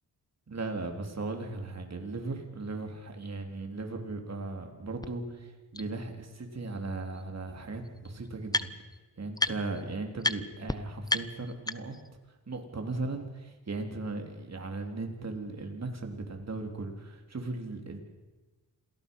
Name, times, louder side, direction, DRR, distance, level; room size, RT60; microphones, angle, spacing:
voice 1, 0.5-8.7 9.2-11.9 12.5-18.0, right 3 dB, 45° right, 4 dB, 3.8 m, -37 dB
sound 1, 5.0-5.1 5.7-5.8 7.1-7.2 7.5-9.0 9.4-9.8 10.2-10.4 10.7-10.8 11.1-12.1, left 2 dB, 10° left, 0.9 m, -32 dB
27.0 x 18.0 x 5.6 m, 1.2 s
cardioid pair, 65°, 37 cm